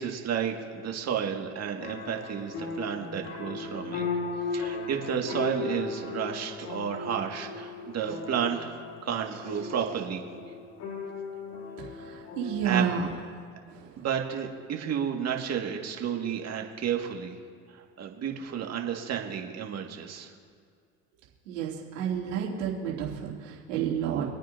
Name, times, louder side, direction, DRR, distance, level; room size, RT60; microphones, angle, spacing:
voice 1, 0.0-4.0 4.5-8.7 9.0-10.2 12.6-12.8 14.0-17.4 17.7-20.3, right 8 dB, 45° right, 2 dB, 2.0 m, -32 dB
sound 1, 1.8-13.0, left 4 dB, 70° left, 1.9 m, -37 dB
voice 2, 11.9-13.1 13.7-14.1 21.5-24.2, right 8 dB, 80° right, -3 dB, 2.9 m, -30 dB
26.5 x 9.1 x 2.7 m, 2.2 s
hypercardioid pair, 75°, 36 cm